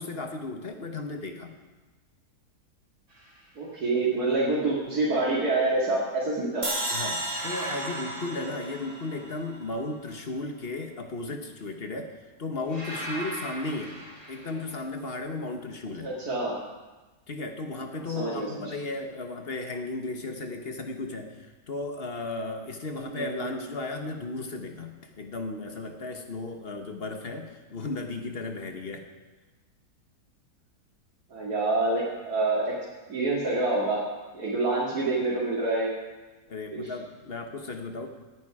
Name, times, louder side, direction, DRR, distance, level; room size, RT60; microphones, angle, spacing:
voice 1, 0.0-1.5 6.9-14.0 14.3-16.1 17.3-29.1 36.5-38.1, left 2 dB, 40° left, 5 dB, 1.3 m, -35 dB
sound 1, 3.1-3.5 7.3-9.4 12.7-14.7, right 1 dB, 90° right, 3.9 m, -40 dB
voice 2, 3.6-6.7 16.0-16.6 18.2-18.6 22.9-23.5 31.3-32.6 33.1-34.0 34.3-35.9 36.7-36.9, right 2 dB, 70° right, -7 dB, 2.7 m, -27 dB
sound 2, 6.6-9.8, right 1 dB, 25° right, 3.1 m, -34 dB
17.5 x 9.5 x 4.9 m, 1.2 s
omnidirectional pair, 1.7 m